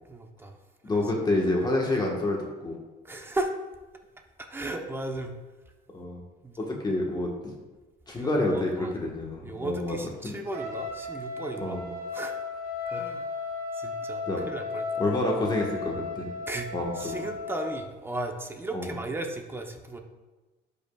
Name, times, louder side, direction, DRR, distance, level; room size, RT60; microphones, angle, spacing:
voice 1, 0.1-0.6 0.9-1.0 3.0-3.5 4.4-5.3 6.4-6.7 8.1-9.1 9.4-11.9 12.1-12.3 12.8-13.3 13.7-14.9 16.5-20.0, right 2 dB, 15° right, 3 dB, 0.9 m, -35 dB
voice 2, 0.8-2.8 5.9-6.2 6.6-7.5 8.1-9.9 10.2-10.3 11.6-11.9 14.3-14.5 15.0-16.3 16.7-17.2 18.7-18.9, left 2 dB, 25° left, -1 dB, 1.4 m, -28 dB
Trumpet, 10.5-17.8, left 4 dB, 60° right, 1.6 m, -35 dB
11.5 x 5.3 x 2.4 m, 1.2 s
cardioid pair, 110°, 17 cm